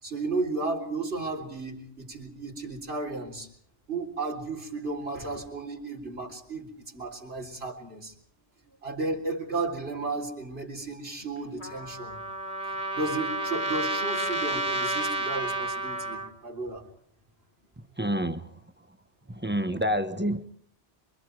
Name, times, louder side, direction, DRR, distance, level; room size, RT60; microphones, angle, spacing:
voice 1, 0.0-3.5 3.9-8.1 8.8-12.2 12.7-16.9, right 3 dB, 70° right, 4.0 m, -34 dB
Trumpet, 11.6-16.3, right 2 dB, 50° left, 2.4 m, -31 dB
voice 2, 18.0-18.5 19.4-20.5, equal, 10° right, 0.9 m, -27 dB
27.5 x 24.5 x 4.7 m
omnidirectional pair, 1.1 m